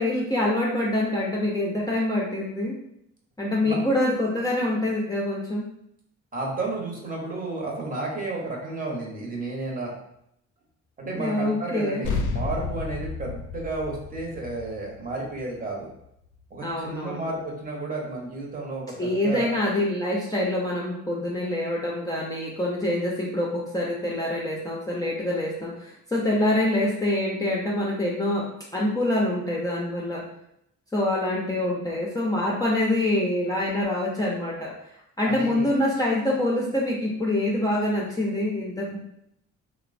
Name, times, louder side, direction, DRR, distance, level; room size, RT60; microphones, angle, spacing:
voice 1, 0.0-2.8 3.4-5.6 11.1-12.1 16.6-17.3 19.0-28.5 28.7-30.2 30.9-34.7 35.2-39.0, left 1 dB, 10° left, -5 dB, 0.5 m, -25 dB
voice 2, 6.3-9.9 11.0-15.9 16.5-19.5 35.2-35.7, right 2 dB, 30° right, -2 dB, 0.8 m, -32 dB
sound 1, 12.0-16.8, left 4 dB, 75° left, 0.5 m, -32 dB
3.0 x 2.0 x 2.5 m, 0.76 s
cardioid pair, 90°, 30 cm